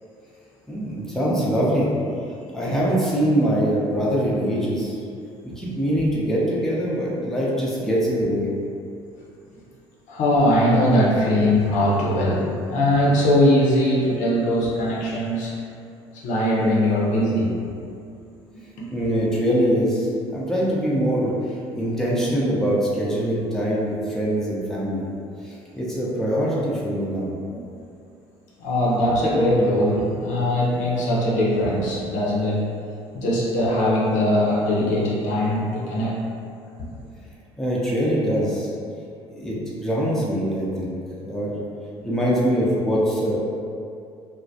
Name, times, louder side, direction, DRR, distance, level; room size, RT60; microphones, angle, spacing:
voice 1, 0.7-1.9 2.5-4.9 5.6-8.5 18.9-25.1 25.4-27.3 37.6-38.7 39.4-40.9 41.2-41.6 42.0-43.4, equal, 5° left, -6 dB, 0.6 m, -23 dB
voice 2, 10.1-15.5 16.2-17.5 28.6-32.6 33.1-36.2, left 1 dB, 60° left, -6 dB, 0.6 m, -20 dB
2.2 x 2.0 x 2.7 m, 2.5 s
hypercardioid pair, 60°, 14 cm